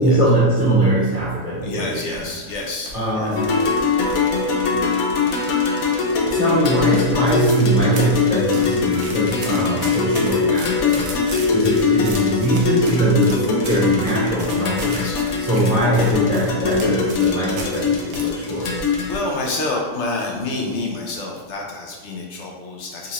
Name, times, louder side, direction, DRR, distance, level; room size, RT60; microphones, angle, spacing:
voice 1, 0.0-2.2 2.9-3.6 6.3-11.1 11.5-15.0 15.4-18.7, right 1 dB, 60° right, -12 dB, 1.4 m, -21 dB
voice 2, 1.6-3.4 10.9-11.3 14.8-15.2 18.5-23.1, left 2 dB, 65° left, -1 dB, 0.9 m, -29 dB
sound 1, 1.9-4.6 4.9-5.7 6.0-6.4 6.7-6.8 7.0-7.7 8.0-17.8 18.1-19.4 19.7-19.8 20.4-20.8 21.2-21.4, right 3 dB, 85° right, 1.1 m, -36 dB
sound 2, 3.4-19.2, left 4 dB, 90° left, 1.1 m, -21 dB
4.0 x 2.5 x 2.9 m, 1.3 s
omnidirectional pair, 1.4 m